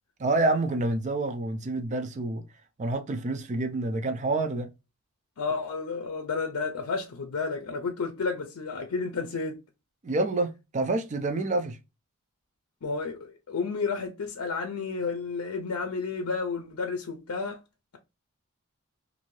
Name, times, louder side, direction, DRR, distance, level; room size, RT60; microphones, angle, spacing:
voice 1, 0.2-2.4 2.8-4.7 10.0-11.8, right 2 dB, 35° right, 0.4 m, -28 dB
voice 2, 5.4-9.6 12.8-17.6, left 4 dB, 85° left, 0.5 m, -31 dB
2.6 x 2.6 x 3.0 m
head